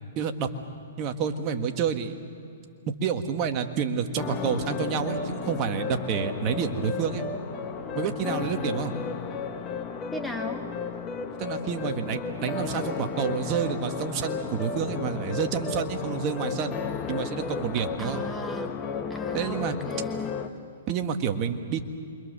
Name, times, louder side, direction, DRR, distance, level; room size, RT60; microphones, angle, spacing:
voice 1, 0.1-0.5 1.0-2.1 3.0-7.2 7.9-8.9 11.4-16.7 17.1-18.2 19.3-19.8 20.9-21.8, right 7 dB, 35° right, 5 dB, 1.7 m, -29 dB
sound 1, 4.1-20.5, left 6 dB, 25° left, 1.4 m, -33 dB
voice 2, 10.1-10.6 17.8-18.7 19.1-20.4, left 1 dB, ahead, 4 dB, 1.1 m, -37 dB
28.0 x 24.0 x 6.8 m, 2.6 s
hypercardioid pair, 140°, 0 cm